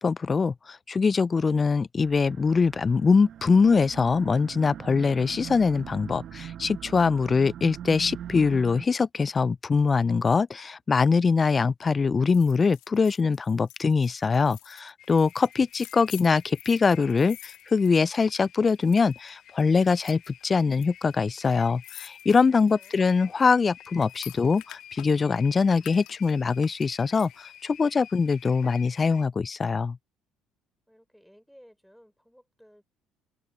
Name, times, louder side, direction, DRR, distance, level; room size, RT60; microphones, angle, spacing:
voice 1, 0.0-30.0, left 5 dB, 35° left, 0.4 m, -23 dB
sound 1, 2.0-8.9, right 10 dB, 60° right, 1.4 m, -41 dB
sound 2, 12.3-18.5 18.7-19.3 19.8-20.9 21.1-21.2 21.4-25.4 25.8-27.6 27.9-28.0, left 17 dB, 80° left, 1.5 m, -48 dB
sound 3, 15.0-29.2, left 11 dB, 65° left, 0.7 m, -51 dB
voice 2, 22.7-23.1 30.9-32.8, equal, ahead, 5.8 m, -56 dB
supercardioid pair, 65°, 0 cm